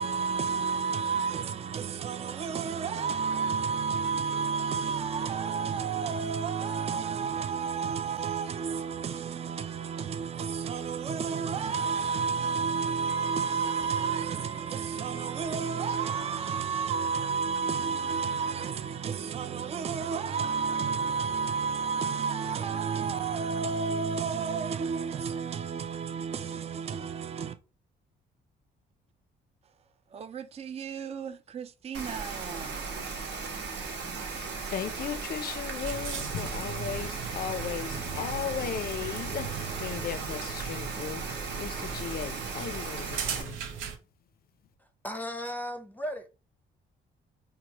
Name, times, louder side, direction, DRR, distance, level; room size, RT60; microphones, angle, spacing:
voice 1, 0.0-27.6 30.1-32.9, right 6 dB, 30° right, 0.4 m, -31 dB
Wind instrument woodwind instrument, 13.1-17.3, right 8 dB, 15° right, 1.0 m, -44 dB
Rain, 31.9-43.4, right 4 dB, 65° right, 1.0 m, -37 dB
voice 2, 34.2-43.6, left 9 dB, 50° left, 0.4 m, -37 dB
sound 1, 35.8-44.0, right 6 dB, 80° right, 0.7 m, -39 dB
voice 3, 44.8-46.3, equal, 10° left, 0.6 m, -36 dB
4.6 x 2.4 x 2.9 m
cardioid pair, 90°, 20 cm